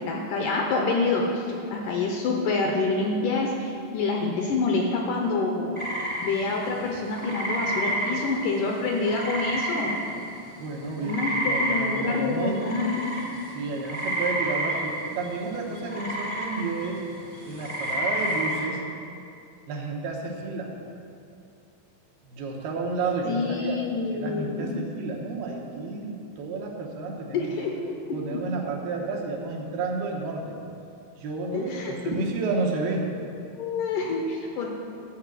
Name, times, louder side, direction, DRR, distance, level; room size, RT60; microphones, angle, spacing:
voice 1, 0.0-5.7 6.2-10.0 11.0-13.2 23.2-24.8 27.3-27.7 28.1-28.4 31.5-32.2 33.5-34.7, left 3 dB, 75° left, 0 dB, 2.0 m, -27 dB
sound 1, 5.7-10.4 10.7-18.7, right 1 dB, 15° right, 0.6 m, -30 dB
voice 2, 10.6-12.6 13.5-17.0 17.5-18.8 19.7-20.7 22.3-23.8 24.1-27.7 28.1-30.6 31.2-33.0, right 3 dB, 80° right, -1 dB, 3.0 m, -31 dB
12.0 x 4.8 x 7.6 m, 2.6 s
omnidirectional pair, 4.4 m